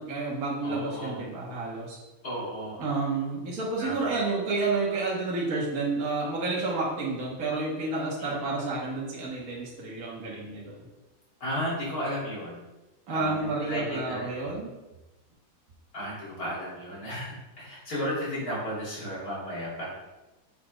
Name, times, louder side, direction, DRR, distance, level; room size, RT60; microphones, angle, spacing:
voice 1, 0.0-2.0 2.8-10.8 13.1-14.7, right 3 dB, 45° right, -5 dB, 1.7 m, -30 dB
voice 2, 0.6-1.2 2.2-2.8 3.8-4.1 8.2-8.4 11.4-12.6 13.1-14.3 15.9-19.9, equal, 45° left, -7 dB, 3.4 m, -34 dB
7.3 x 4.3 x 5.0 m, 1.1 s
omnidirectional pair, 2.3 m